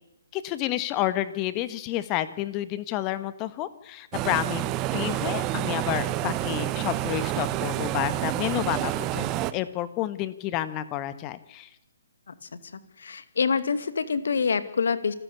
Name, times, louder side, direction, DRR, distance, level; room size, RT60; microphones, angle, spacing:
voice 1, 0.3-4.7 4.9-11.7, left 14 dB, 25° left, 14 dB, 1.6 m, -30 dB
sound 1, 4.1-9.5, right 14 dB, 25° right, 1.2 m, -28 dB
voice 2, 13.0-15.1, left 5 dB, 65° left, 12 dB, 2.3 m, -26 dB
28.0 x 13.5 x 8.5 m, 0.90 s
figure-of-eight pair, 135°, 0 cm